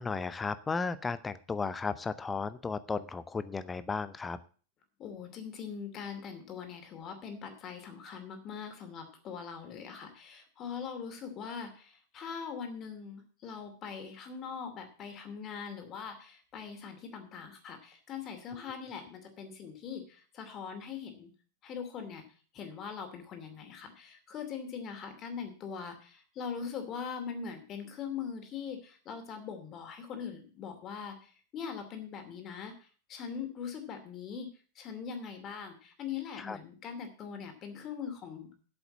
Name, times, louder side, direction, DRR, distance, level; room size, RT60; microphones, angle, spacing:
voice 1, 0.0-4.4 18.6-18.7 36.4-36.6, left 4 dB, 15° left, 15 dB, 0.7 m, -34 dB
voice 2, 5.0-21.3 21.6-22.2 22.5-32.7 33.1-34.5 34.8-38.5, left 6 dB, 30° left, 6 dB, 2.6 m, -41 dB
8.2 x 7.1 x 8.6 m, 0.41 s
figure-of-eight pair, 90°, 0 cm